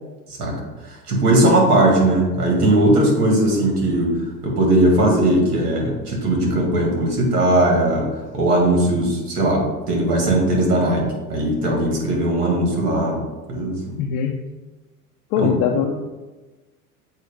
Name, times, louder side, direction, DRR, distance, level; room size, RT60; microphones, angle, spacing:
voice 1, 0.8-4.1 4.4-13.2 13.5-14.0 15.4-15.9, right 1 dB, 85° right, -1 dB, 2.0 m, -19 dB
voice 2, 14.0-14.3 15.3-15.9, left 8 dB, 45° left, 2 dB, 0.6 m, -21 dB
7.7 x 2.8 x 5.0 m, 1.2 s
hypercardioid pair, 85°, 45 cm